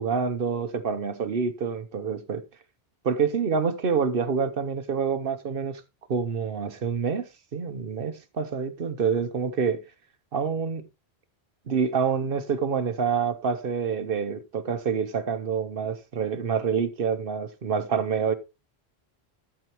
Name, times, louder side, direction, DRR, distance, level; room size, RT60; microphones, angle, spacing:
voice 1, 0.0-2.4 3.0-5.8 6.1-7.3 7.5-9.8 10.3-10.8 11.7-18.3, right 6 dB, 60° right, 1.0 m, -27 dB
12.5 x 7.6 x 2.9 m
omnidirectional pair, 1.1 m